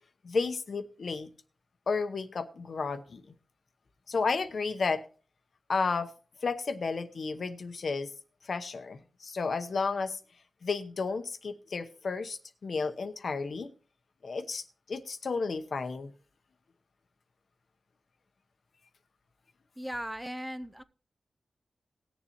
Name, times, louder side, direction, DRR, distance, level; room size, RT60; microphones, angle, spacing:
voice 1, 0.2-1.3 1.9-3.2 4.1-5.0 5.7-6.1 6.4-8.1 8.5-10.2 10.6-13.7 14.2-14.6 14.9-16.1, left 4 dB, 65° left, 9 dB, 0.9 m, -32 dB
voice 2, 19.8-20.8, equal, 10° right, 12 dB, 0.5 m, -37 dB
19.0 x 7.0 x 2.9 m, 0.39 s
wide cardioid pair, 75°, 0 cm